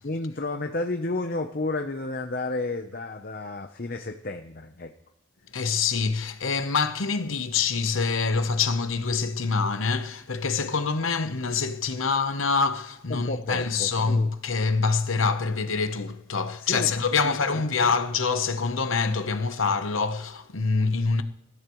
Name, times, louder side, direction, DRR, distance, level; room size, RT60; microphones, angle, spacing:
voice 1, 0.0-4.9 13.1-14.3 16.6-16.9 17.2-17.4, left 2 dB, 45° left, 0.8 m, -31 dB
voice 2, 5.5-21.2, left 4 dB, 80° left, 1.0 m, -25 dB
26.0 x 14.0 x 3.1 m
head